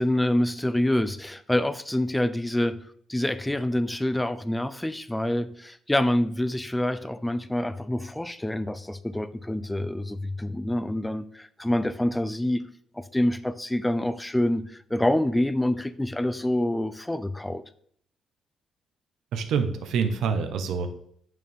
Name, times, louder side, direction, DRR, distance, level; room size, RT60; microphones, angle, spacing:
voice 1, 0.0-2.8 3.1-12.7 13.0-17.6, left 1 dB, 5° left, 0.5 m, -26 dB
voice 2, 19.3-20.9, right 6 dB, 70° right, 1.0 m, -26 dB
9.0 x 6.6 x 3.5 m
cardioid pair, 145°, 0 cm